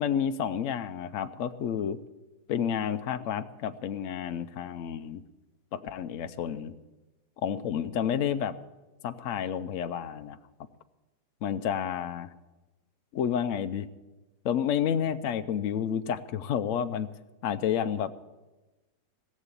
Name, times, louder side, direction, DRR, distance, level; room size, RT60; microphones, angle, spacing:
voice 1, 0.0-2.0 2.5-5.2 5.7-6.7 7.4-8.5 9.0-10.4 11.4-12.3 13.1-13.9 14.4-17.1 17.4-18.1, left 8 dB, 75° left, 10 dB, 0.7 m, -30 dB
18.0 x 7.4 x 8.3 m, 1.1 s
omnidirectional pair, 2.0 m